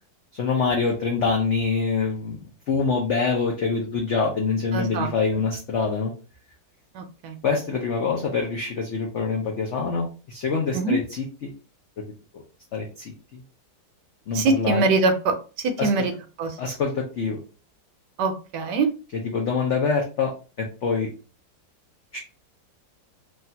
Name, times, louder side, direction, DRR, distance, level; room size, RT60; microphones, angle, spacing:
voice 1, 0.3-6.1 7.4-11.5 12.3-12.4 12.7-13.4 14.3-14.8 15.8-16.0 16.6-17.4 19.1-20.3 20.6-21.1 22.1-22.2, left 4 dB, 85° left, 0 dB, 0.6 m, -25 dB
voice 2, 4.7-5.1 6.9-7.4 10.7-11.0 14.3-16.1 16.4-16.6 18.2-18.9, right 3 dB, 75° right, 6 dB, 1.1 m, -23 dB
3.2 x 2.3 x 2.7 m, 0.34 s
omnidirectional pair, 2.0 m